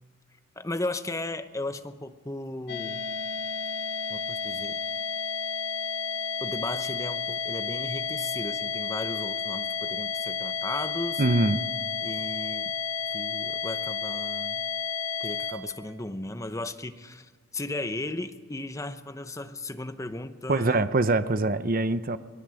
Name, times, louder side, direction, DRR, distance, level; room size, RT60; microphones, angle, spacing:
voice 1, 0.6-3.0 4.1-4.8 6.4-11.2 12.0-12.8 13.1-14.6 15.2-20.9, left 2 dB, 15° left, 10 dB, 0.8 m, -36 dB
sound 1, 2.7-15.5, left 5 dB, 50° left, 2.2 m, -31 dB
voice 2, 11.2-11.6 20.5-22.2, right 2 dB, 45° right, 12 dB, 0.8 m, -23 dB
23.5 x 19.5 x 7.8 m, 1.5 s
head